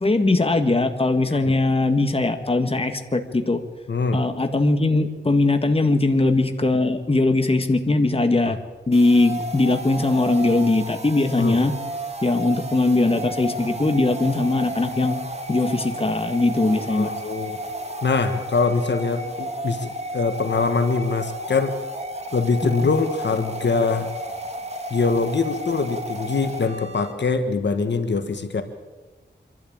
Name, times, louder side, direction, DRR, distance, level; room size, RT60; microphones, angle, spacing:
voice 1, 0.0-3.6 4.1-8.6 8.9-11.7 12.2-15.2 15.5-17.1 22.8-22.9, left 2 dB, 30° left, 7 dB, 1.7 m, -20 dB
voice 2, 3.9-4.2 8.5-8.6 11.4-11.6 16.9-17.6 18.0-21.7 22.3-24.1 24.9-28.6, left 4 dB, 75° left, 8 dB, 1.5 m, -23 dB
sound 1, 8.9-27.1, right 1 dB, 35° right, 2.9 m, -33 dB
26.0 x 12.5 x 8.8 m, 1.3 s
wide cardioid pair, 80°, 19 cm